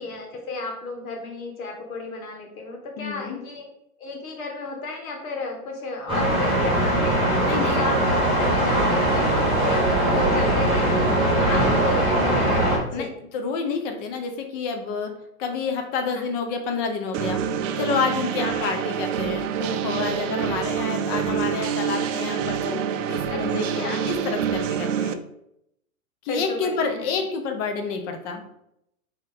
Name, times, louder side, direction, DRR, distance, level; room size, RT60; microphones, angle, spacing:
voice 1, 0.0-3.7 4.0-9.3 9.6-13.1 16.1-16.3 18.4-18.7 23.3-24.2 26.3-27.2, left 3 dB, 70° left, 2 dB, 1.4 m, -33 dB
voice 2, 3.0-3.4 7.4-7.8 12.9-13.1 13.3-15.1 15.4-17.4 17.8-25.2 26.2-28.4, left 5 dB, 20° left, 4 dB, 0.4 m, -29 dB
sound 1, 6.1-12.8, right 1 dB, 10° right, 1.6 m, -21 dB
sound 2, 17.1-25.1, right 8 dB, 60° right, 0.5 m, -27 dB
4.2 x 2.9 x 3.8 m, 0.79 s
hypercardioid pair, 125°, 44 cm